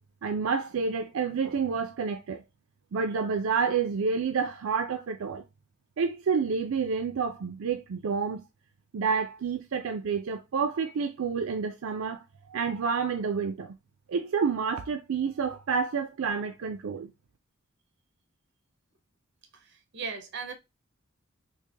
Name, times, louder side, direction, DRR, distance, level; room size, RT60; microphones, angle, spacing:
voice 1, 0.2-2.4 2.9-5.4 6.0-8.4 8.9-12.2 12.5-13.7 14.1-17.1, right 5 dB, 80° right, 0.4 m, -29 dB
voice 2, 19.6-20.5, right 5 dB, 55° right, 0.8 m, -37 dB
3.3 x 2.9 x 3.3 m
head